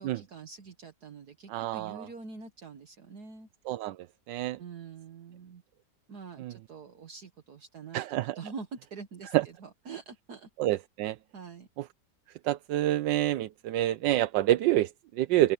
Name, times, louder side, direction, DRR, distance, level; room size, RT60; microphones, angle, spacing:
voice 1, 0.0-3.5 4.6-5.6 6.1-10.5 11.3-11.7, right 5 dB, 60° right, 1.9 m, -45 dB
voice 2, 1.5-2.1 3.7-4.0 4.3-4.6 6.4-6.5 7.9-8.4 9.3-9.4 10.6-11.2 12.4-15.5, right 14 dB, 85° right, 1.3 m, -27 dB
open air
omnidirectional pair, 1.9 m